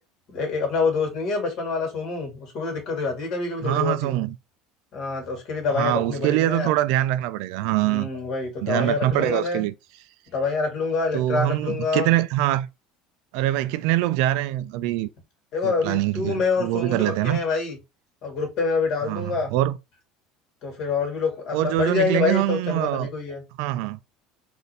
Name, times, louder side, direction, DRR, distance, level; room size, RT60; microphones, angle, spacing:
voice 1, 0.3-4.1 4.9-6.7 7.8-9.6 10.3-12.1 15.5-17.8 18.2-19.5 20.6-23.4, left 4 dB, 50° left, 2.2 m, -26 dB
voice 2, 3.6-4.4 5.7-8.1 8.6-9.7 11.1-12.7 13.3-15.1 15.6-17.4 19.0-19.8 21.5-23.1 23.6-24.0, right 15 dB, 75° right, 0.4 m, -24 dB
4.3 x 2.7 x 3.3 m
cardioid pair, 150°, 0 cm